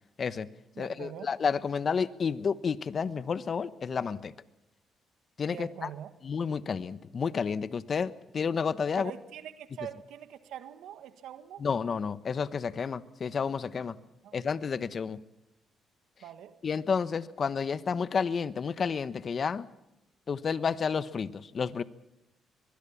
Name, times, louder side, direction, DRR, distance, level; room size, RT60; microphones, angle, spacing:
voice 1, 0.2-0.5 0.8-4.3 5.4-5.9 6.2-9.1 11.6-14.0 14.3-15.2 16.6-19.7 20.3-21.8, left 6 dB, 45° left, 15 dB, 1.1 m, -30 dB
voice 2, 0.7-1.3 5.5-6.1 8.9-11.6 14.2-14.3 16.2-16.6, right 10 dB, 85° right, 11 dB, 1.6 m, -43 dB
23.5 x 21.5 x 7.2 m, 0.93 s
cardioid pair, 90°, 0 cm